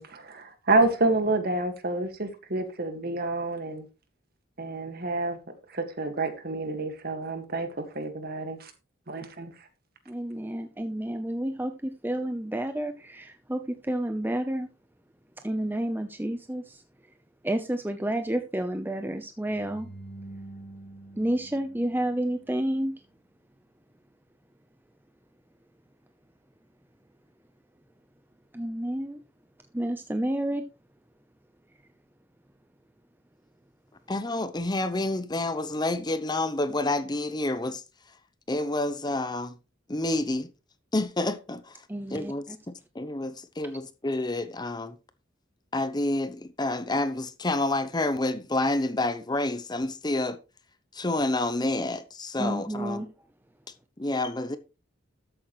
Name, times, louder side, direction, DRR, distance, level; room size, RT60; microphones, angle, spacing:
voice 1, 0.0-3.8 4.6-5.4 5.7-8.7 9.1-9.5, right 2 dB, 50° right, 1.9 m, -28 dB
voice 2, 10.1-14.7 15.4-16.8 17.4-19.9 21.2-22.9 28.5-29.2 29.7-30.7 41.9-42.6 52.4-53.1, right 1 dB, 10° right, 0.8 m, -30 dB
sound 1, 19.4-22.6, right 2 dB, 55° left, 2.3 m, -46 dB
voice 3, 34.1-37.8 38.5-39.5 39.9-40.5 40.9-41.8 42.1-44.9 45.7-50.4 50.9-53.0 54.0-54.6, left 2 dB, 20° left, 0.8 m, -29 dB
13.5 x 8.6 x 3.2 m
head